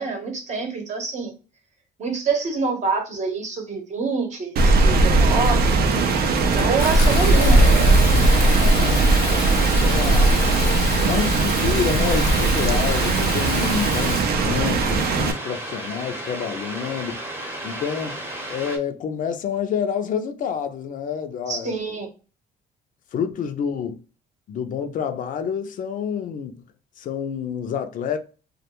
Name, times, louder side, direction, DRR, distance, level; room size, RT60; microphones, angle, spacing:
voice 1, 0.0-1.3 2.0-5.6 6.5-7.6 21.5-22.1, right 4 dB, 45° right, 0.8 m, -26 dB
Rain, 4.6-15.3, right 2 dB, 65° right, 0.5 m, -18 dB
Fill (with liquid), 6.8-14.2, left 6 dB, 90° left, 0.7 m, -30 dB
voice 2, 8.8-9.2 9.5-10.3 10.9-17.2 17.6-18.2 18.5-22.0 23.1-24.0 24.5-26.6 27.0-28.2, left 7 dB, 50° left, 0.4 m, -28 dB
sound 1, 12.0-18.8, right 1 dB, 15° right, 0.8 m, -33 dB
2.3 x 2.1 x 2.9 m
cardioid pair, 110°, 17 cm